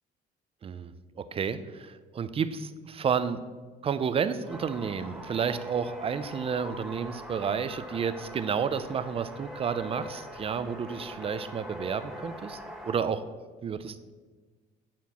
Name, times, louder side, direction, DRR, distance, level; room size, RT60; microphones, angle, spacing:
voice 1, 0.6-3.4 3.8-12.6 12.8-13.2 13.6-14.1, right 6 dB, 35° right, 12 dB, 0.5 m, -31 dB
sound 1, 4.5-12.9, equal, 5° right, 1.2 m, -42 dB
9.5 x 4.4 x 5.7 m, 1.4 s
cardioid pair, 110°, 17 cm